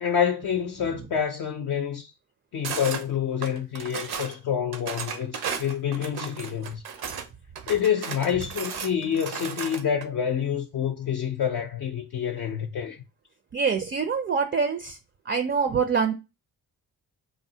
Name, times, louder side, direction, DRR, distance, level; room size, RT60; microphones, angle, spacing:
voice 1, 0.0-2.1 2.5-6.8 7.7-13.0, left 8 dB, 60° left, 0.5 m, -27 dB
sound 1, 2.6-3.0 3.4-4.4 4.7-7.3 7.6-10.1, right 7 dB, 70° right, 0.6 m, -34 dB
voice 2, 13.5-15.0 15.2-16.1, right 5 dB, 30° right, 0.4 m, -25 dB
3.2 x 2.0 x 2.7 m
cardioid pair, 70°, 39 cm